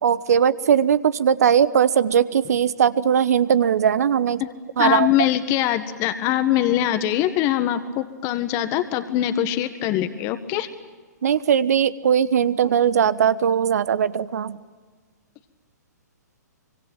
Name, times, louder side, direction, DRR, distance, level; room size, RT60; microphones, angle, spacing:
voice 1, 0.0-4.4 4.8-5.1 11.2-14.6, right 8 dB, 60° right, 16 dB, 1.1 m, -19 dB
voice 2, 4.8-10.7, left 12 dB, 30° left, 9 dB, 1.7 m, -22 dB
25.0 x 25.0 x 9.0 m, 1.5 s
figure-of-eight pair, 120°, 10 cm